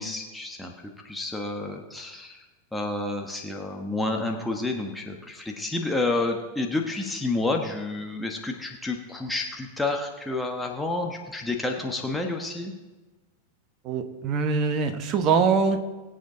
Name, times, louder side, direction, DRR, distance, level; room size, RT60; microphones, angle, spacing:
voice 1, 0.0-2.5 2.7-12.7, left 2 dB, 5° left, 1 dB, 1.3 m, -30 dB
voice 2, 13.8-15.8, right 5 dB, 35° right, 8 dB, 1.3 m, -23 dB
22.5 x 7.8 x 3.9 m, 1.2 s
figure-of-eight pair, 90°, 0 cm